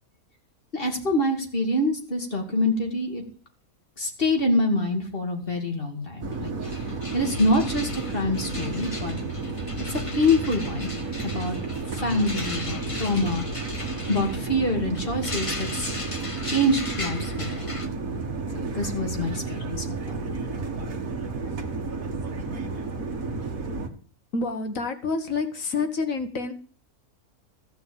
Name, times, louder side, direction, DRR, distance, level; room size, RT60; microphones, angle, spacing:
voice 1, 0.7-3.2 4.0-6.5 7.1-9.2 9.9-10.9 11.2-11.6 11.9-13.4 14.1-15.9 16.4-17.8 18.5-20.2, left 1 dB, 35° left, 2 dB, 2.7 m, -26 dB
sound 1, 6.2-23.9, right 3 dB, 65° right, 2.1 m, -32 dB
sound 2, 6.3-6.4 6.6-17.9, left 2 dB, 20° left, 1.4 m, -38 dB
voice 2, 24.3-26.5, left 4 dB, 60° left, 7 dB, 1.8 m, -28 dB
15.0 x 6.2 x 8.7 m, 0.42 s
omnidirectional pair, 1.6 m